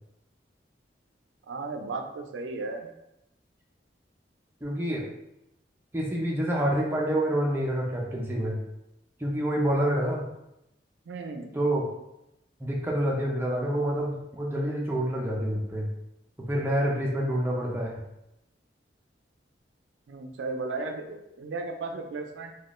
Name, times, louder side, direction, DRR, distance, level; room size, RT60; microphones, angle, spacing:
voice 1, 1.5-2.9 11.1-11.5 20.1-22.5, right 3 dB, 85° right, 4 dB, 0.4 m, -35 dB
voice 2, 4.6-5.1 5.9-8.6 9.2-10.2 11.5-11.9 12.6-15.9 16.4-18.1, right 1 dB, 15° right, -2 dB, 0.5 m, -27 dB
3.5 x 2.3 x 2.4 m, 0.86 s
head